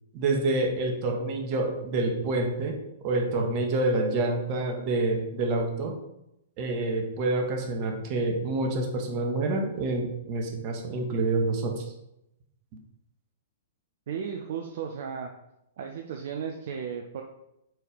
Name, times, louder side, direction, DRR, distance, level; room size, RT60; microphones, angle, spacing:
voice 1, 0.1-2.8 3.0-6.0 6.6-11.8, right 2 dB, 35° right, 2 dB, 1.3 m, -27 dB
voice 2, 14.1-15.3 15.8-17.2, right 7 dB, 55° right, 3 dB, 0.6 m, -35 dB
4.7 x 4.6 x 5.0 m, 0.85 s
figure-of-eight pair, 110°, 0 cm